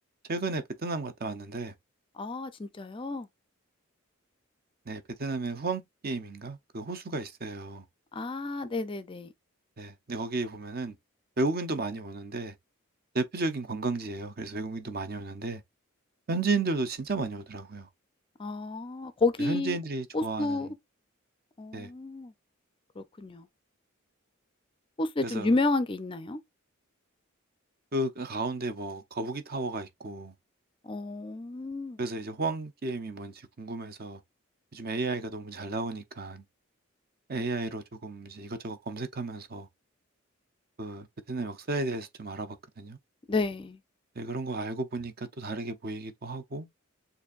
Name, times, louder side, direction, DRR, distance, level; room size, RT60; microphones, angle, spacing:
voice 1, 0.3-1.7 4.9-7.9 9.8-11.0 11.4-12.6 13.1-15.6 16.3-17.9 19.4-20.7 21.7-21.9 25.2-25.6 27.9-30.3 32.0-34.2 34.7-36.4 37.3-39.7 40.8-43.0 44.2-46.7, right 3 dB, 45° right, 0.7 m, -33 dB
voice 2, 2.2-3.3 8.1-9.3 18.4-19.8 20.1-20.7 21.6-22.3 23.0-23.5 25.0-26.4 30.8-32.0 43.3-43.8, left 3 dB, 25° left, 0.4 m, -31 dB
6.9 x 2.6 x 2.4 m
head